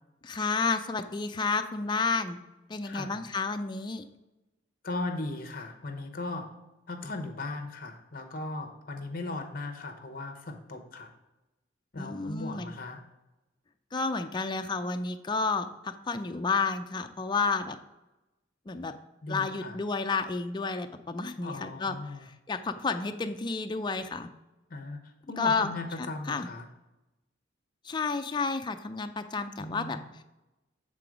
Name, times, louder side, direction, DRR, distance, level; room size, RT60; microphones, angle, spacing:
voice 1, 0.2-2.4 2.7-4.1 12.0-12.8 13.9-17.8 18.7-18.9 19.3-24.3 25.4-25.7 26.0-26.5 27.8-30.0, left 4 dB, 25° left, 7 dB, 0.4 m, -31 dB
voice 2, 2.8-3.2 4.8-6.5 6.9-11.1 11.9-13.0 19.2-19.8 21.4-22.2 24.7-26.7 29.6-30.0, left 2 dB, 50° left, 6 dB, 0.9 m, -37 dB
7.6 x 3.8 x 5.0 m, 1.0 s
head